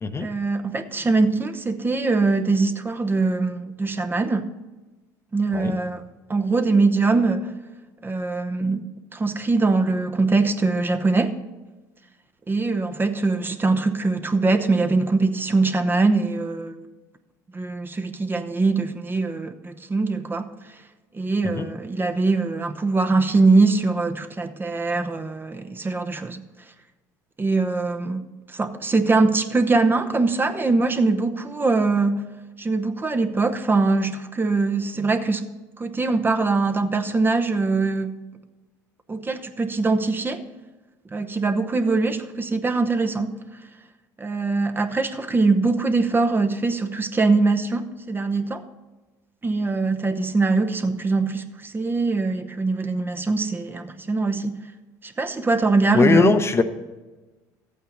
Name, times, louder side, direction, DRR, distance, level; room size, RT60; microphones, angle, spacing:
voice 1, 0.2-4.5 5.3-6.0 6.3-7.5 8.0-8.8 9.1-11.3 12.5-16.7 17.5-20.8 21.1-26.4 27.4-28.2 28.5-32.2 32.6-35.4 35.8-38.2 39.1-40.4 41.1-43.3 44.2-48.6 49.4-54.5 55.0-56.3, right 3 dB, 25° right, 7 dB, 1.0 m, -22 dB
voice 2, 55.9-56.6, left 4 dB, 30° left, 8 dB, 0.9 m, -19 dB
13.5 x 8.7 x 4.0 m, 1.2 s
hypercardioid pair, 75°, 9 cm